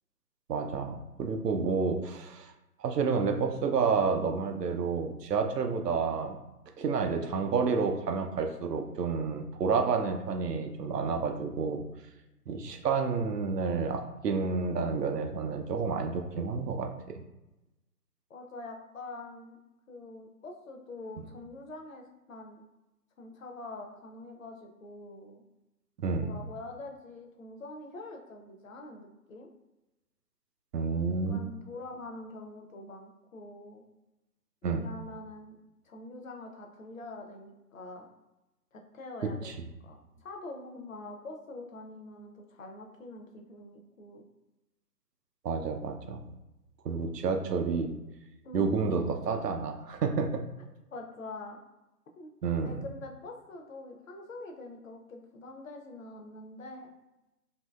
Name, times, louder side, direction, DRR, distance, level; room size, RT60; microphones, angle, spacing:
voice 1, 0.5-2.5 2.8-6.4 6.8-11.8 12.5-16.9 26.0-26.3 30.7-31.4 34.6-34.9 39.4-39.5 45.4-46.2 46.8-47.9 48.5-50.4 52.4-52.8, right 5 dB, 75° right, 4 dB, 0.6 m, -30 dB
voice 2, 18.3-19.6 19.9-22.6 23.2-25.4 26.2-29.5 31.3-33.8 34.6-35.6 35.8-38.1 38.7-44.3 48.4-48.7 50.9-51.6 52.2-52.3 52.6-56.9, left 2 dB, 55° left, 3 dB, 0.5 m, -45 dB
2.7 x 2.7 x 2.2 m, 0.98 s
figure-of-eight pair, 150°, 49 cm